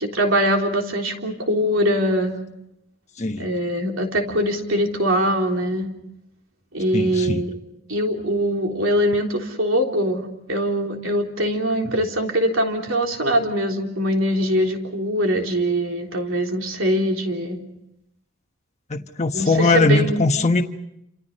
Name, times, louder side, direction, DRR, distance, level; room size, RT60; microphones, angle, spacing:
voice 1, 0.0-2.4 3.4-5.9 6.7-7.5 7.9-17.6 19.3-20.2, equal, 65° right, 2 dB, 3.6 m, -22 dB
voice 2, 6.9-7.4 18.9-20.6, left 3 dB, 35° left, 4 dB, 1.2 m, -20 dB
29.5 x 27.5 x 5.5 m, 0.80 s
head